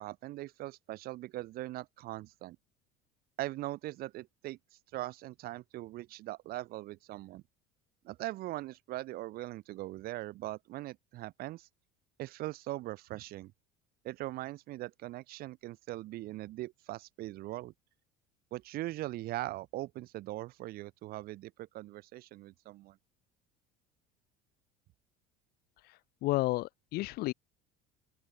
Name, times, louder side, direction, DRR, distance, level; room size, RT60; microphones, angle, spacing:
voice 1, 0.0-2.6 3.4-4.6 4.9-7.4 8.0-11.7 12.2-13.5 14.0-17.7 18.5-23.0, right 17 dB, 55° right, 3.7 m, -40 dB
voice 2, 26.2-27.3, left 19 dB, 55° left, 1.6 m, -31 dB
open air
cardioid pair, 150°, 19 cm